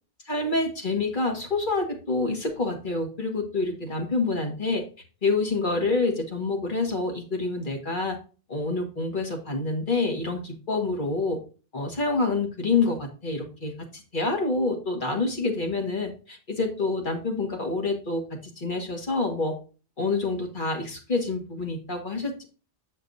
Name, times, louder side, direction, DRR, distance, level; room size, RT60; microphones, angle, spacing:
voice 1, 0.2-4.8 5.2-8.2 8.5-11.4 11.7-19.5 20.0-22.5, left 3 dB, 45° left, 3 dB, 1.7 m, -27 dB
7.8 x 6.9 x 2.6 m, 0.36 s
omnidirectional pair, 1.2 m